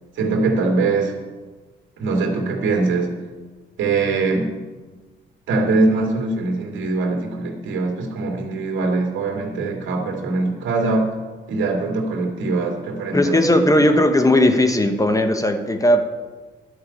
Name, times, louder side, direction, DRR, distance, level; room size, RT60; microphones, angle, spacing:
voice 1, 0.1-1.1 2.0-3.1 3.8-4.5 5.5-11.2 11.5-14.0, right 3 dB, 75° right, 1 dB, 2.4 m, -22 dB
voice 2, 13.1-16.0, left 1 dB, 15° left, 7 dB, 1.0 m, -17 dB
11.0 x 5.8 x 8.4 m, 1.3 s
cardioid pair, 90°, 20 cm